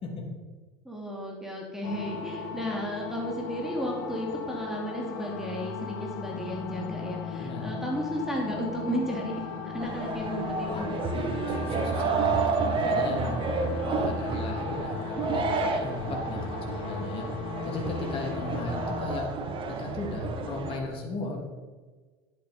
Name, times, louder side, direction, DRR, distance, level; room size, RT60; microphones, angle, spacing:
voice 1, 0.8-10.9, equal, 5° right, -2 dB, 3.0 m, -33 dB
sound 1, 1.8-19.0, left 7 dB, 60° left, 1.3 m, -37 dB
sound 2, 9.8-20.8, right 4 dB, 35° right, 1.7 m, -30 dB
voice 2, 10.7-13.4 13.9-17.3 17.6-19.3 19.6-21.4, left 2 dB, 40° left, 0 dB, 3.1 m, -36 dB
11.0 x 7.6 x 5.5 m, 1.4 s
hypercardioid pair, 90°, 14 cm